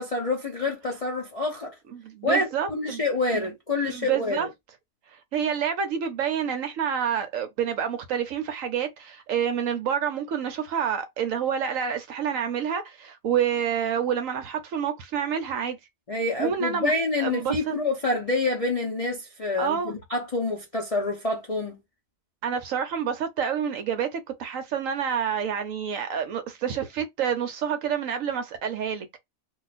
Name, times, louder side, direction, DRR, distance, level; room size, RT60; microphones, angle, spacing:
voice 1, 0.0-1.7 2.2-4.5 16.1-21.8, left 2 dB, 55° left, 0.4 m, -27 dB
voice 2, 1.9-3.0 3.3-3.5 3.8-4.5 5.1-15.8 16.4-16.9 17.2-17.7 19.6-19.9 22.4-29.2, right 8 dB, 70° right, 0.8 m, -28 dB
2.4 x 2.3 x 3.9 m
omnidirectional pair, 1.7 m